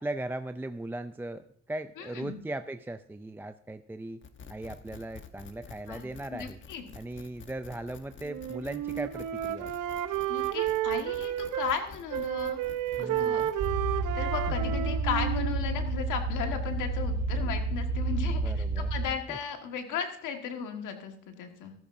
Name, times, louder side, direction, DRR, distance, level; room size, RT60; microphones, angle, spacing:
voice 1, 0.0-4.2 4.5-6.6 6.9-9.7 13.0-13.5 14.5-14.6 17.4-17.5 18.3-18.9 19.3-19.4, right 1 dB, 5° right, 10 dB, 0.3 m, -38 dB
voice 2, 2.0-2.4 5.9-6.8 10.3-12.6 13.0-13.4 13.9-21.7, left 7 dB, 85° left, 5 dB, 1.6 m, -36 dB
sound 1, 4.2-13.7, left 6 dB, 40° left, 1.1 m, -49 dB
Wind instrument woodwind instrument, 8.2-11.8 12.1-16.1, right 11 dB, 85° right, 0.8 m, -32 dB
sound 2, 13.6-19.1, right 3 dB, 65° right, 5.5 m, -30 dB
13.5 x 13.5 x 2.6 m, 0.62 s
cardioid pair, 90°, 30 cm